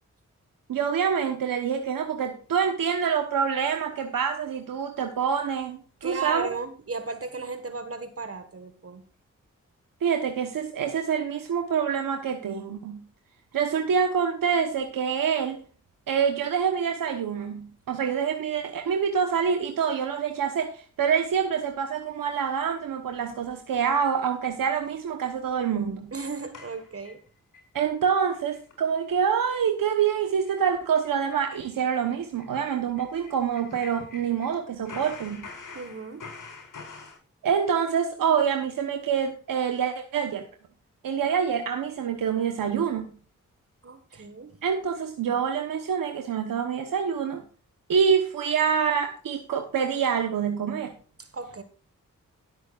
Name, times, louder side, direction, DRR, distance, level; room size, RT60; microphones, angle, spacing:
voice 1, 0.7-6.5 10.0-13.0 13.5-15.6 16.1-26.1 27.7-35.4 37.4-40.4 41.0-43.1 44.1-44.2 44.6-47.4 47.9-50.9, right 7 dB, 85° right, 5 dB, 1.1 m, -26 dB
voice 2, 6.0-9.0 26.1-27.2 35.7-36.2 43.8-44.6 51.2-51.6, right 4 dB, 45° right, 9 dB, 1.6 m, -35 dB
sound 1, 26.5-27.7 28.1-28.2 28.5-28.7 29.0-29.1 29.5-29.7 30.0-30.2 30.4-30.6 30.9-34.6 34.9-37.2, left 4 dB, 70° left, 4.8 m, -45 dB
18.0 x 8.3 x 2.5 m, 0.40 s
cardioid pair, 50°, 32 cm